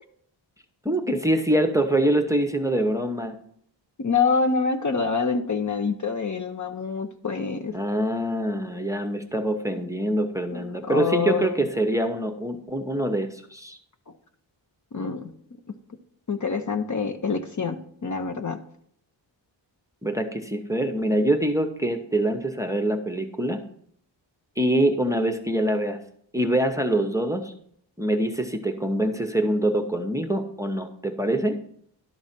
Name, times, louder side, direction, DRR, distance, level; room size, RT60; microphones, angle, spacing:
voice 1, 0.8-3.4 7.7-13.8 20.0-23.6 24.6-26.0 26.3-27.5 28.0-31.6, right 1 dB, 5° right, 5 dB, 0.8 m, -24 dB
voice 2, 4.0-7.7 10.5-11.6 14.9-15.3 16.3-18.6, left 5 dB, 40° left, 7 dB, 0.8 m, -26 dB
12.0 x 4.0 x 7.3 m, 0.66 s
wide cardioid pair, 115°, 47 cm